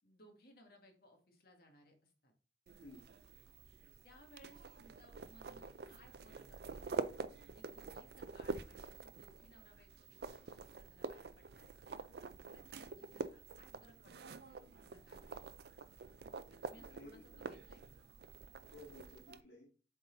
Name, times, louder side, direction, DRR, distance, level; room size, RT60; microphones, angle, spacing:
voice 1, 0.0-2.3 4.0-6.9 7.4-12.1 12.5-15.6 16.5-18.0, equal, 55° left, 3 dB, 1.7 m, -64 dB
sound 1, 2.7-19.4, right 4 dB, 60° right, 0.4 m, -47 dB
voice 2, 16.7-17.4 18.7-19.7, left 1 dB, 75° left, -4 dB, 1.9 m, -56 dB
7.6 x 4.0 x 3.9 m, 0.37 s
head